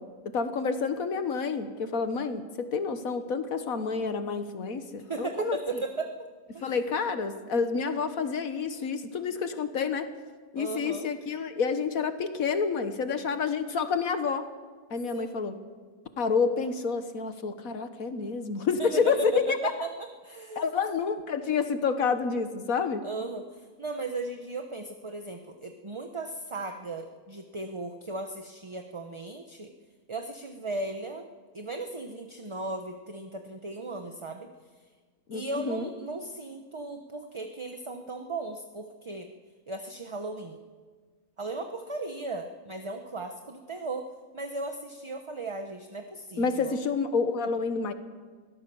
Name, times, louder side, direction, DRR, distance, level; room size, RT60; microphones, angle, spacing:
voice 1, 0.0-5.6 6.6-10.1 10.5-14.5 14.9-15.6 16.2-19.7 20.6-23.1 35.3-35.9 46.4-47.9, left 5 dB, 70° left, 9 dB, 1.8 m, -29 dB
voice 2, 5.1-6.1 6.5-6.8 10.5-11.1 15.1-15.5 18.8-19.9 20.2-20.7 23.0-29.7 30.1-31.3 31.5-34.5 35.3-39.3 39.7-40.6 41.4-44.1 44.3-46.7, right 2 dB, 25° right, 5 dB, 0.9 m, -36 dB
23.0 x 16.5 x 7.1 m, 1.5 s
omnidirectional pair, 1.6 m